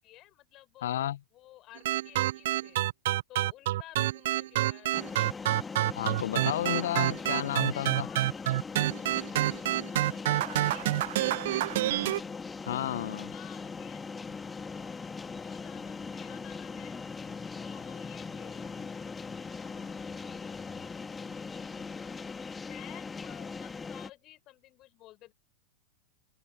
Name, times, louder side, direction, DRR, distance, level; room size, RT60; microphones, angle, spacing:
voice 1, 0.0-2.8 3.3-5.3 7.2-8.5 9.9-12.3 13.3-14.9 15.4-17.0 17.5-18.8 19.5-20.4 21.5-25.3, left 16 dB, 35° left, 6.6 m, -54 dB
voice 2, 0.8-1.2 5.9-8.1 12.7-13.3, left 12 dB, 60° left, 1.0 m, -32 dB
sound 1, 1.8-12.2, right 15 dB, 55° right, 0.5 m, -28 dB
sound 2, 4.9-24.1, left 4 dB, 15° left, 2.3 m, -40 dB
sound 3, 7.3-22.0, left 3 dB, 80° left, 7.4 m, -65 dB
figure-of-eight pair, 90°, 0 cm